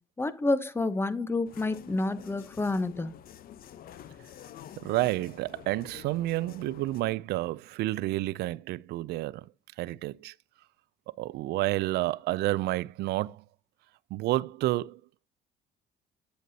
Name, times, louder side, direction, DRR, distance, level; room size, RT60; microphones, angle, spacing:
voice 1, 0.2-3.1, left 2 dB, 15° left, 0.8 m, -29 dB
sound 1, 1.4-7.0, left 10 dB, 60° left, 0.8 m, -48 dB
voice 2, 4.8-9.5 9.8-10.3 11.1-13.4 14.1-15.0, right 17 dB, 75° right, 0.4 m, -30 dB
9.0 x 8.1 x 2.8 m
cardioid pair, 110°, 17 cm